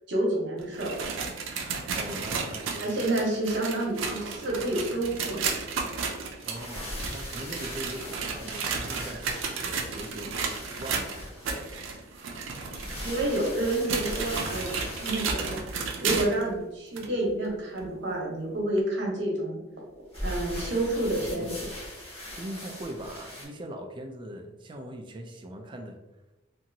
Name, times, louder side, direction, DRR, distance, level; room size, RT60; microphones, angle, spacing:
voice 1, 0.1-1.1 2.8-5.5 12.8-15.6 16.0-19.6 20.2-21.5, right 1 dB, 65° right, -2 dB, 0.9 m, -29 dB
sound 1, 0.6-16.5 17.0-17.1 17.8-17.9 18.8-18.9, right 5 dB, 85° right, 0.5 m, -33 dB
voice 2, 2.0-2.9 6.4-10.3 10.8-11.2 21.2-21.6 22.4-26.0, right 1 dB, 25° right, 4 dB, 0.3 m, -40 dB
sound 2, 6.4-16.3 20.1-23.4, left 1 dB, 30° left, 1.2 m, -40 dB
2.8 x 2.5 x 2.6 m, 1.0 s
head